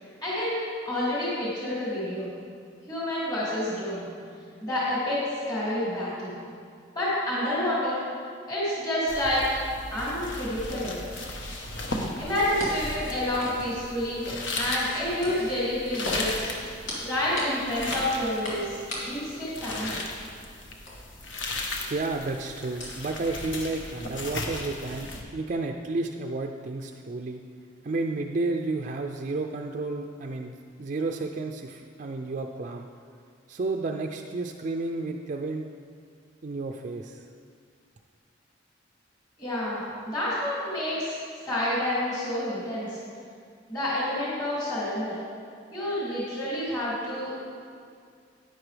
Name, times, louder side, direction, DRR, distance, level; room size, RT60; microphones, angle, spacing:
voice 1, 0.2-2.3 2.9-4.1 4.6-5.2 5.5-6.3 6.9-8.0 8.5-9.4 9.9-11.0 12.2-14.2 14.6-16.5 17.0-18.8 19.1-20.0 39.4-41.2 41.5-43.0 43.7-45.2 45.7-47.5, left 1 dB, 20° left, -9 dB, 2.4 m, -29 dB
sound 1, 9.1-25.2, left 2 dB, 65° left, 1.0 m, -36 dB
sound 2, 12.4-24.0, left 1 dB, 85° left, 2.6 m, -40 dB
voice 2, 21.8-27.4 27.8-32.9 33.5-35.7 36.4-37.2, right 3 dB, 40° right, 3 dB, 0.4 m, -31 dB
10.5 x 9.5 x 3.3 m, 2.2 s
head